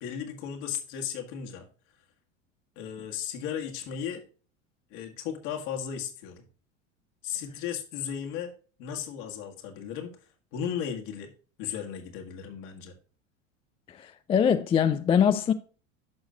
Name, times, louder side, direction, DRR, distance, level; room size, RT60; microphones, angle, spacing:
voice 1, 0.0-1.7 2.8-4.2 4.9-6.5 7.2-8.5 8.8-10.1 10.5-11.3 11.6-12.9, left 8 dB, 55° left, 1.8 m, -35 dB
voice 2, 13.9-15.5, left 8 dB, 15° left, 0.4 m, -23 dB
11.5 x 6.3 x 2.4 m
figure-of-eight pair, 80°, 39 cm